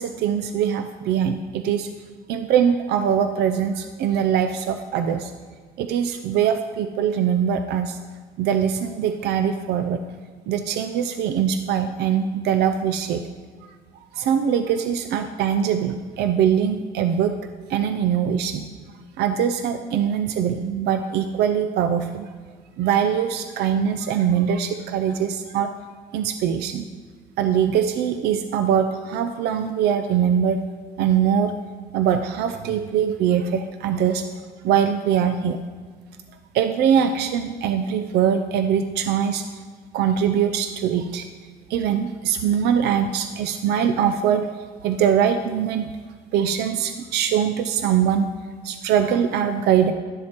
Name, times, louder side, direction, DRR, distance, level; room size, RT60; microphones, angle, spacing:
voice 1, 0.0-1.9 2.3-5.3 5.8-8.0 8.4-10.0 10.5-13.2 14.1-17.3 17.7-18.6 19.2-22.3 22.8-25.7 26.1-26.8 27.4-30.6 31.0-31.5 31.9-34.2 34.6-35.6 36.5-39.4 39.9-41.2 41.7-44.4 44.8-45.9 46.3-48.3 48.6-49.9, right 8 dB, 75° right, 8 dB, 0.4 m, -22 dB
11.5 x 7.4 x 2.9 m, 1.5 s
cardioid pair, 110°, 17 cm